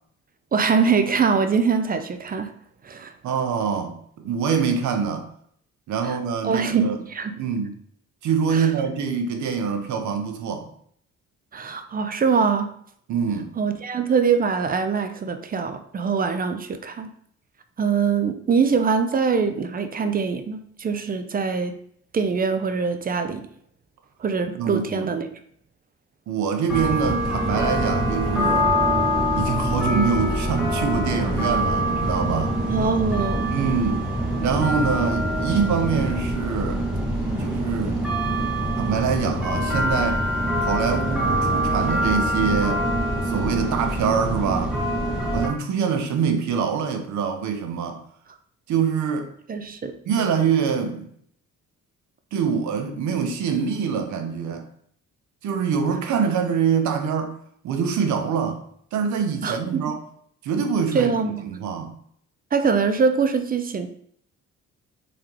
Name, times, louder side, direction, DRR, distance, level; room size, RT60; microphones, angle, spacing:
voice 1, 0.5-2.5 2.8-3.1 6.0-6.2 6.4-7.4 8.5-8.7 11.5-12.7 13.6-17.1 17.8-21.7 22.1-23.5 24.2-25.4 32.7-33.5 49.5-49.9 59.4-59.8 60.9-61.5 62.5-63.9, right 5 dB, 30° right, 0.5 m, -23 dB
voice 2, 3.2-5.3 5.9-7.0 7.4-7.7 8.2-10.7 13.1-13.5 24.6-25.1 26.3-28.8 29.3-32.6 33.5-34.1 34.4-36.8 37.4-38.1 38.8-40.2 40.6-42.8 43.2-44.8 45.3-48.0 48.7-49.3 50.1-51.1 52.3-54.7 55.4-57.3 57.6-58.6 58.9-60.0 60.4-61.2 61.5-62.0, right 6 dB, 70° right, 0.8 m, -24 dB
sound 1, 26.7-45.5, equal, 5° right, 1.4 m, -24 dB
3.8 x 3.3 x 3.0 m
cardioid pair, 90°, 30 cm